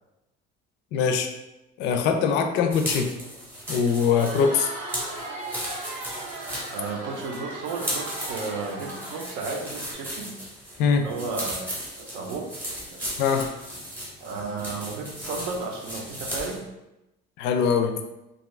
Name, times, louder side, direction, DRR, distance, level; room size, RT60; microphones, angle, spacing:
voice 1, 0.9-1.3 1.8-3.1 3.7-4.7 10.8-11.1 13.2-13.5 17.4-18.0, left 6 dB, 65° left, 6 dB, 0.4 m, -22 dB
sound 1, 2.7-16.6, equal, 10° right, 0.7 m, -36 dB
Crowd, 3.9-9.9, right 2 dB, 40° right, 0.6 m, -38 dB
voice 2, 6.7-10.3 11.0-12.5 12.9-13.1 14.2-16.6, right 4 dB, 80° right, 1 dB, 0.6 m, -33 dB
2.6 x 2.4 x 3.1 m, 0.96 s
cardioid pair, 175°, 20 cm